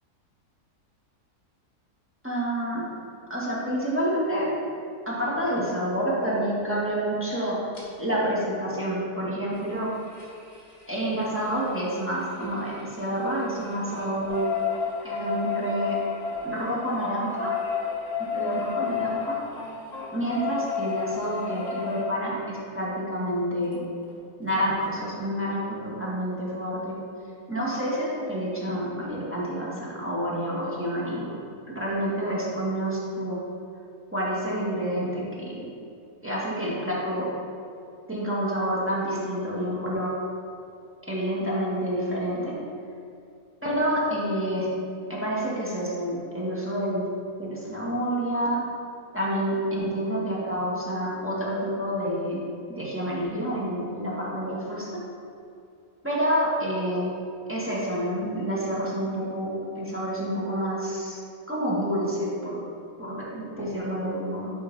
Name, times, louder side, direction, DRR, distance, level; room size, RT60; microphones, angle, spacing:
voice 1, 2.2-2.8 3.3-4.5 5.0-7.6 8.0-9.9 10.9-14.4 15.0-16.0 16.4-17.5 18.2-19.4 20.1-23.8 24.4-26.9 27.5-31.3 31.7-33.4 34.1-35.6 36.2-37.3 38.1-40.1 41.1-42.5 43.6-44.7 45.1-47.0 47.4-48.6 49.1-52.4 52.7-54.9 56.0-57.1 57.5-61.2 61.5-62.6 63.0-64.5, equal, 10° right, -7 dB, 1.5 m, -28 dB
sound 1, 7.7-7.8 9.5-13.0 13.3-22.0 23.7-23.8 24.1-24.2 24.5-24.6, left 6 dB, 55° left, 2.1 m, -32 dB
11.0 x 4.3 x 4.0 m, 2.5 s
omnidirectional pair, 1.7 m